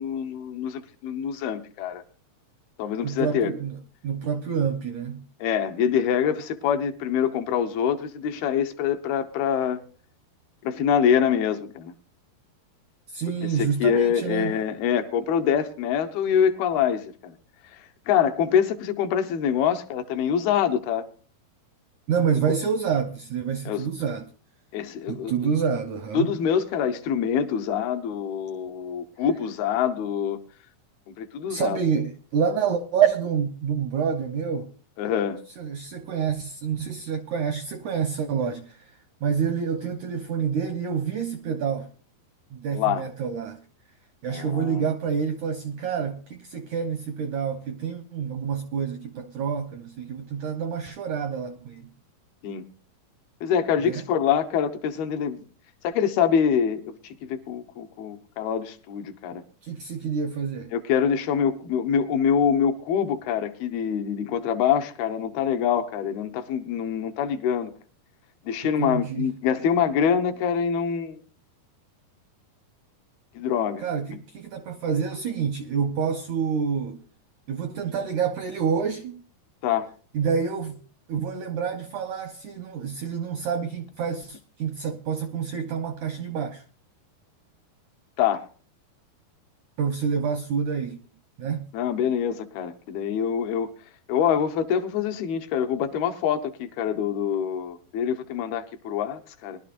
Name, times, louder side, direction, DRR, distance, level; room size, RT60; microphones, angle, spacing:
voice 1, 0.0-2.0 2.8-3.5 5.4-9.8 10.6-11.9 13.4-17.4 18.1-21.1 23.7-23.9 24.7-25.3 26.1-30.4 31.2-31.8 35.0-35.4 42.7-43.0 44.3-44.8 52.4-52.6 53.4-55.4 55.8-59.4 60.7-67.7 68.4-71.2 73.4-73.8 79.6-79.9 88.2-88.5 91.7-93.7 94.1-99.6, left 8 dB, 80° left, 2.8 m, -25 dB
voice 2, 3.0-5.3 13.1-14.6 22.1-24.2 25.1-26.3 31.5-34.7 35.6-38.9 39.2-41.9 42.5-43.6 44.2-51.9 53.8-54.0 59.6-60.7 68.8-69.3 73.8-77.0 77.5-79.2 80.1-80.8 81.1-86.6 89.8-91.0 91.4-91.7, right 7 dB, 80° right, 1.7 m, -28 dB
22.0 x 12.0 x 2.5 m
omnidirectional pair, 4.5 m